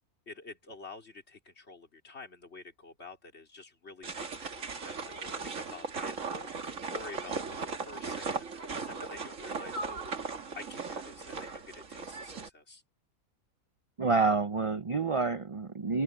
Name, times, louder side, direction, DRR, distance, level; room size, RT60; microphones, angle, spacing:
voice 1, 0.3-10.3 10.5-12.8, left 3 dB, 45° left, 3.8 m, -49 dB
sound 1, 4.0-12.5, right 4 dB, 60° right, 2.1 m, -38 dB
voice 2, 14.0-16.0, right 4 dB, 40° right, 0.4 m, -28 dB
open air
omnidirectional pair, 1.5 m